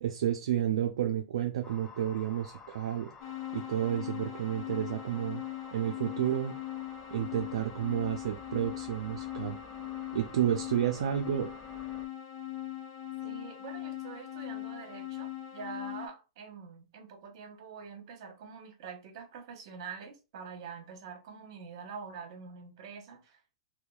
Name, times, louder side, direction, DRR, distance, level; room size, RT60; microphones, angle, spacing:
voice 1, 0.0-3.1 3.5-5.4 5.7-6.6 7.1-9.6 10.1-11.5, right 10 dB, 75° right, 0.4 m, -31 dB
sound 1, 1.6-12.1, left 4 dB, 15° left, 0.4 m, -52 dB
sound 2, 3.2-16.1, left 13 dB, 60° left, 1.1 m, -40 dB
voice 2, 13.2-23.6, right 5 dB, 60° right, 0.9 m, -45 dB
2.7 x 2.2 x 2.3 m
hypercardioid pair, 130°, 3 cm